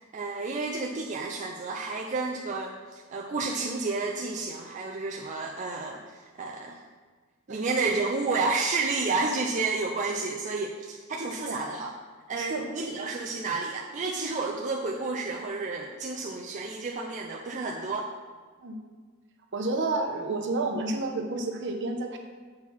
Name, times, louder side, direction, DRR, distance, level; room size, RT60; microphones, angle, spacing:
voice 1, 0.1-6.8 7.5-11.9 12.3-18.1, right 3 dB, 35° right, -1 dB, 0.5 m, -31 dB
voice 2, 12.4-12.7 18.6-18.8 19.5-22.2, right 2 dB, 55° right, 3 dB, 0.9 m, -30 dB
7.6 x 4.5 x 5.8 m, 1.4 s
head